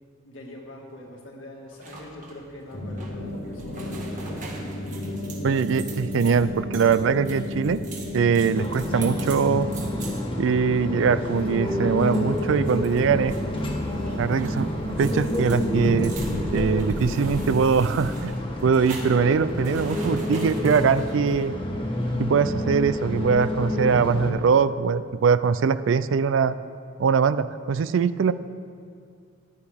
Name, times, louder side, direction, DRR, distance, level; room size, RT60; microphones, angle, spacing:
voice 1, 0.2-4.5, left 1 dB, 75° left, -1 dB, 2.0 m, -43 dB
sound 1, 1.7-21.4, right 3 dB, 40° right, 1.6 m, -44 dB
sound 2, 2.7-17.6, left 1 dB, 50° left, 1.2 m, -33 dB
voice 2, 5.4-7.8 8.1-9.7 10.4-13.3 14.2-14.7 15.0-16.2 16.5-18.3 18.6-21.6 22.2-26.6 27.0-28.3, right 6 dB, 70° right, 15 dB, 0.4 m, -22 dB
sound 3, 8.6-24.3, left 1 dB, 25° left, 1.3 m, -29 dB
14.0 x 10.5 x 3.5 m, 2.3 s
head